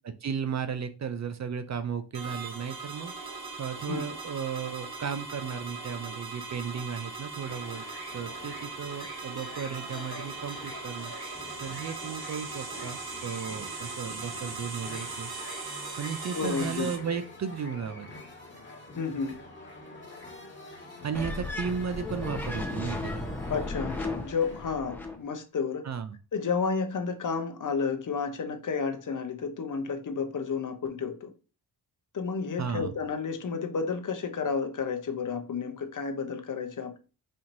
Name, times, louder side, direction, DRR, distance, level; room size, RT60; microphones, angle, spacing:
voice 1, 0.2-3.1 3.6-7.8 8.1-11.1 11.6-15.3 16.0-18.1 21.0-23.3 25.8-26.2 32.6-32.9, right 6 dB, 40° right, 0.4 m, -35 dB
sound 1, 2.1-17.0, right 4 dB, 60° right, 1.0 m, -39 dB
sound 2, 7.5-24.8, left 2 dB, 25° left, 1.6 m, -46 dB
voice 2, 16.3-16.9 19.0-19.3 23.5-25.8 26.3-31.3 32.1-37.0, left 5 dB, 45° left, 0.7 m, -31 dB
sound 3, 21.1-25.2, left 2 dB, 5° left, 0.8 m, -35 dB
4.3 x 2.9 x 2.6 m
cardioid pair, 65°, 42 cm